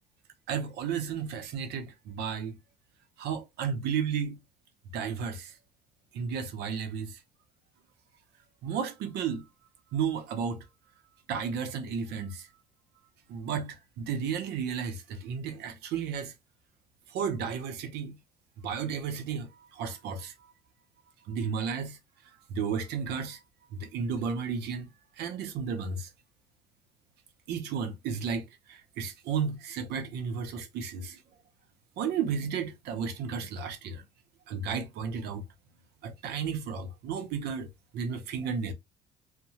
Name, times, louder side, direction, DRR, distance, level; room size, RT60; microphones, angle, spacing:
voice 1, 0.5-2.6 3.2-4.4 4.9-5.5 6.1-7.1 8.6-9.5 9.9-10.6 11.3-12.5 13.3-16.3 17.1-18.2 18.6-20.3 21.3-22.0 22.5-23.4 23.7-24.9 25.2-26.1 27.5-28.4 28.7-31.2 32.0-34.0 34.5-35.4 36.0-37.7 37.9-38.7, right 6 dB, 80° right, 0.6 m, -33 dB
2.7 x 2.1 x 2.7 m
cardioid pair, 110°, 17 cm